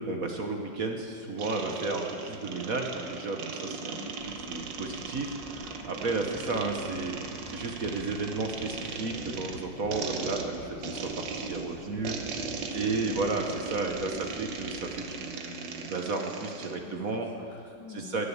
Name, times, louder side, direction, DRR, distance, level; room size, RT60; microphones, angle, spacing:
voice 1, 0.0-4.0 4.2-7.1 7.5-12.2 12.7-17.3 17.9-18.2, right 3 dB, 50° right, 3 dB, 1.6 m, -33 dB
sound 1, 1.4-16.8, right 5 dB, 70° right, 1.7 m, -38 dB
voice 2, 3.9-4.2 11.8-13.2 16.8-18.3, left 6 dB, 90° left, 1 dB, 2.1 m, -48 dB
sound 2, 4.2-15.1, left 2 dB, 60° left, 2.5 m, -47 dB
18.5 x 10.5 x 7.4 m, 2.4 s
omnidirectional pair, 2.0 m